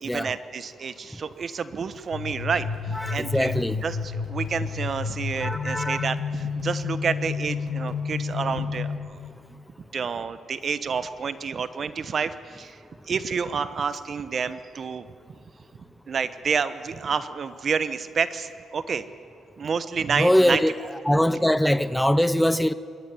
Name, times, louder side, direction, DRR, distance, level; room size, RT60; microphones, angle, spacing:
voice 1, 0.0-3.5 3.8-9.2 9.9-12.8 13.1-15.1 16.1-19.0 19.6-20.6, right 6 dB, 45° right, 1.0 m, -29 dB
sound 1, 2.1-9.0, left 5 dB, 60° left, 7.8 m, -30 dB
voice 2, 2.9-3.8 5.4-6.1 20.2-20.7 21.1-22.7, equal, 5° left, 0.7 m, -22 dB
24.5 x 13.5 x 9.6 m
cardioid pair, 90°, 0 cm